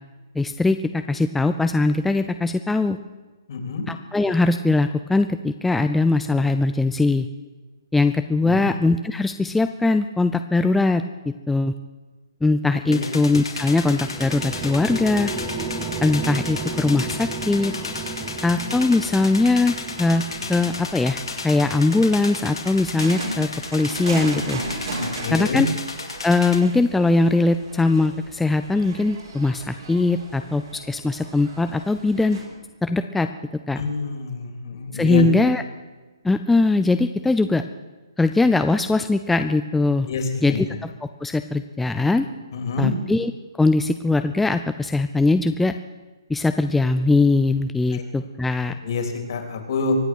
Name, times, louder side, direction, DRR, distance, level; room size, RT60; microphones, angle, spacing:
voice 1, 0.4-3.0 3.9-7.3 7.9-11.7 12.4-15.3 16.0-17.7 18.4-24.6 25.3-25.7 26.2-32.4 32.8-33.3 33.7-33.8 34.9-35.6 36.2-37.6 38.2-40.1 40.4-40.9 41.2-42.3 42.8-43.3 43.6-45.7 46.3-48.7, left 3 dB, 5° left, 8 dB, 0.4 m, -21 dB
voice 2, 3.5-3.8 8.4-8.7 12.9-13.1 25.2-25.6 33.7-35.2 40.1-40.6 42.5-42.9 47.9-48.0 48.8-50.0, left 4 dB, 55° left, 5 dB, 3.3 m, -26 dB
sound 1, 12.9-26.6, left 4 dB, 90° left, 3.2 m, -34 dB
sound 2, 13.4-23.2, right 4 dB, 15° right, 1.2 m, -34 dB
sound 3, 13.5-32.5, right 2 dB, 65° right, 4.6 m, -38 dB
24.0 x 8.1 x 6.2 m, 1.2 s
hypercardioid pair, 145°, 3 cm